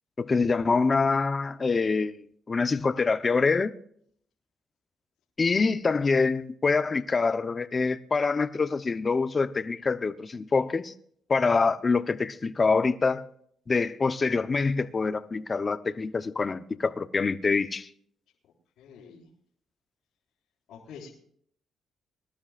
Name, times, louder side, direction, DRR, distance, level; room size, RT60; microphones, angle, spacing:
voice 1, 0.2-2.2 2.5-3.7 5.4-10.9 11.3-13.2 13.7-17.9, left 4 dB, 30° left, 0.8 m, -25 dB
voice 2, 18.8-19.3 20.7-21.1, left 6 dB, 85° left, 4.0 m, -46 dB
23.0 x 12.5 x 2.5 m
cardioid pair, 90°, 0 cm